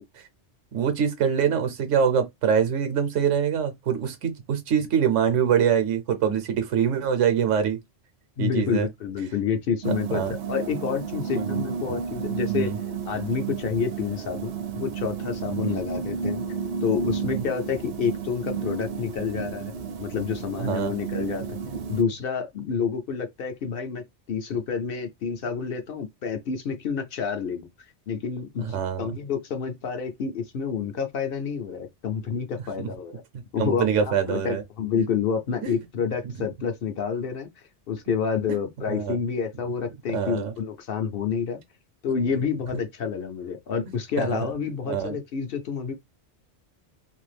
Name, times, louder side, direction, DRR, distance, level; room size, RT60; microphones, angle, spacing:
voice 1, 0.7-7.8 8.4-8.9 10.1-10.3 11.3-11.6 11.9-12.0 12.5-12.8 15.6-15.8 17.3-17.4 20.6-20.9 28.6-29.1 32.8-32.9 33.6-34.6 35.6-35.7 38.9-39.2 40.1-40.5 44.2-44.5 44.8-45.2, right 7 dB, 90° right, 1.1 m, -24 dB
voice 2, 8.4-10.2 10.5-12.7 13.1-16.4 16.8-19.7 20.0-21.6 21.9-27.7 28.1-33.2 33.5-37.5 37.9-41.6 42.0-45.9, left 6 dB, 60° left, 0.6 m, -29 dB
sound 1, 9.8-22.0, right 6 dB, 65° right, 0.7 m, -32 dB
2.6 x 2.4 x 3.2 m
omnidirectional pair, 1.2 m